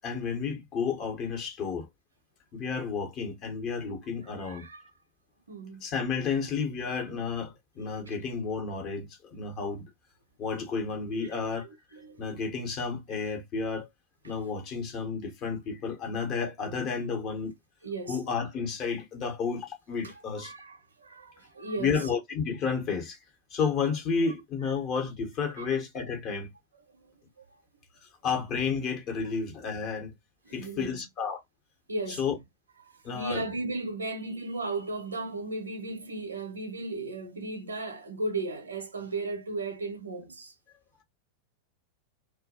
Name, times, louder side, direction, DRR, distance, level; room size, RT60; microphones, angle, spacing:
voice 1, 0.0-1.9 2.5-4.7 5.8-9.9 10.4-11.7 12.2-13.9 14.2-17.5 18.1-20.5 21.8-23.2 23.5-26.5 28.0-30.1 30.5-31.4 32.2-32.4 33.0-33.4, left 5 dB, 35° left, 1.0 m, -31 dB
voice 2, 4.4-4.8 5.5-5.9 8.1-8.2 11.9-12.3 17.8-18.2 20.0-22.1 25.6-25.7 30.5-31.0 31.9-32.3 32.8-40.5, right 2 dB, 75° right, 0.5 m, -36 dB
2.3 x 2.1 x 2.7 m
figure-of-eight pair, 90°, 0 cm